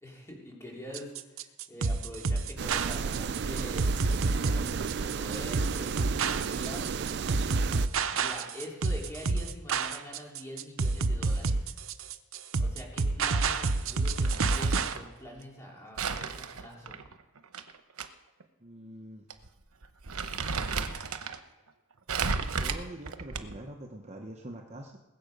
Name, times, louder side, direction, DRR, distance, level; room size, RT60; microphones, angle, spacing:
voice 1, 0.0-4.0 4.4-6.9 8.1-11.7 12.6-17.0, equal, 15° left, -2 dB, 3.2 m, -45 dB
sound 1, 0.9-14.9, right 3 dB, 70° right, 0.7 m, -29 dB
sound 2, 2.6-7.9, right 6 dB, 50° right, 0.4 m, -33 dB
Crumpling crinkling, 14.0-15.1 16.0-18.1 18.4-18.5 19.3-19.5 19.8-21.4 22.1-23.7, right 5 dB, 90° right, 0.9 m, -33 dB
voice 2, 18.6-19.2 20.7-21.1 22.6-25.0, right 1 dB, 30° right, 2 dB, 0.9 m, -44 dB
20.0 x 7.7 x 5.3 m, 1.2 s
head